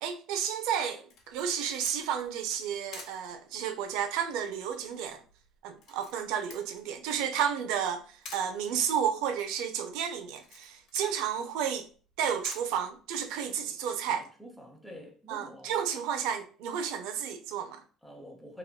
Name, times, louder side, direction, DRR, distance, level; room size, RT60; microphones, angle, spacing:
voice 1, 0.0-5.2 5.6-8.0 8.3-11.9 12.2-14.3 15.3-17.8, right 8 dB, 80° right, 0.4 m, -32 dB
Camera, 1.1-13.6, left 4 dB, 65° left, 0.8 m, -53 dB
voice 2, 14.1-16.0 18.0-18.6, equal, ahead, 0.8 m, -48 dB
2.9 x 2.9 x 2.2 m
supercardioid pair, 105°, 0 cm